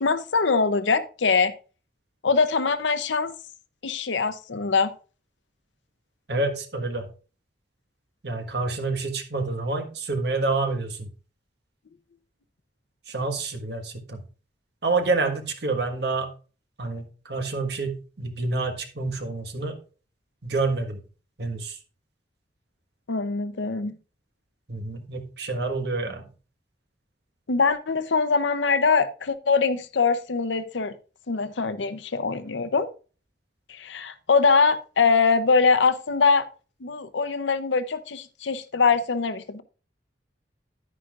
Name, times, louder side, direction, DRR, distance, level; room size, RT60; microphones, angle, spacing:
voice 1, 0.0-1.5 2.2-3.3 3.8-4.9 23.1-24.0 27.5-31.0 31.3-32.9 33.7-36.5 36.8-39.6, left 4 dB, 80° left, 11 dB, 0.7 m, -23 dB
voice 2, 6.3-7.0 8.2-11.1 13.1-14.2 14.8-16.3 16.8-19.7 20.4-21.0 21.4-21.7 24.7-26.3, right 3 dB, 60° right, 5 dB, 1.4 m, -28 dB
10.0 x 9.8 x 2.4 m, 0.36 s
head